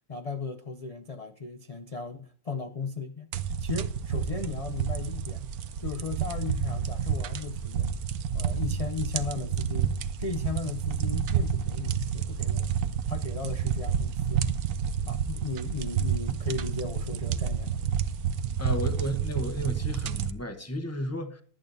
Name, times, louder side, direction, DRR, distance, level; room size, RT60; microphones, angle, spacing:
voice 1, 0.1-5.5 5.8-7.9 8.3-12.7 13.1-14.5 15.1-17.9, left 4 dB, 55° left, 0.4 m, -36 dB
sound 1, 3.3-20.3, right 8 dB, 75° right, 1.3 m, -30 dB
voice 2, 18.6-21.4, equal, 10° left, 1.0 m, -33 dB
22.5 x 8.8 x 2.7 m
omnidirectional pair, 1.6 m